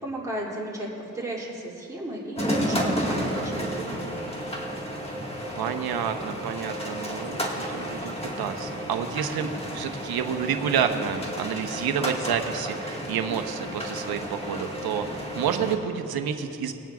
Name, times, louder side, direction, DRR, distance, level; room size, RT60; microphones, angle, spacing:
voice 1, 0.0-0.9 1.1-4.2, right 1 dB, 10° right, -6 dB, 2.6 m, -34 dB
sound 1, 2.4-15.8, equal, 15° left, 1.6 m, -32 dB
voice 2, 5.6-16.7, right 7 dB, 80° right, 7 dB, 0.9 m, -29 dB
21.5 x 9.1 x 2.4 m, 2.9 s
cardioid pair, 85°, 37 cm